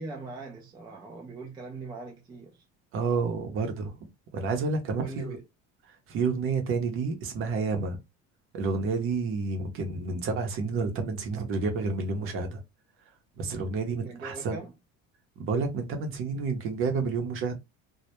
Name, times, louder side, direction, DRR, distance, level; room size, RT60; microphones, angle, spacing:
voice 1, 0.0-2.6 5.0-5.4 14.0-14.7, right 3 dB, 15° right, 0.3 m, -41 dB
voice 2, 2.9-3.9 4.3-5.4 6.1-8.0 8.5-12.6 13.4-14.6 15.4-17.6, right 4 dB, 45° right, 0.7 m, -29 dB
2.1 x 2.1 x 2.8 m
cardioid pair, 160°, 30 cm